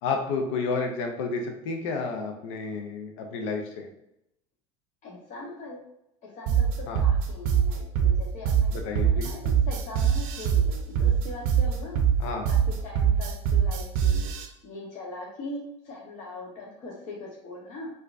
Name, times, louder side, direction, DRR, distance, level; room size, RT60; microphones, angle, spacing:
voice 1, 0.0-3.9 6.9-7.0 8.7-9.3 12.2-12.5, left 4 dB, 80° left, 3 dB, 0.6 m, -31 dB
voice 2, 5.0-5.8 6.2-12.0 12.5-12.6 12.8-14.3 14.6-17.9, left 2 dB, 50° left, -3 dB, 0.9 m, -41 dB
sound 1, 6.5-14.5, right 8 dB, 65° right, 0.6 m, -23 dB
4.4 x 2.4 x 2.4 m, 0.82 s
hypercardioid pair, 85°, 16 cm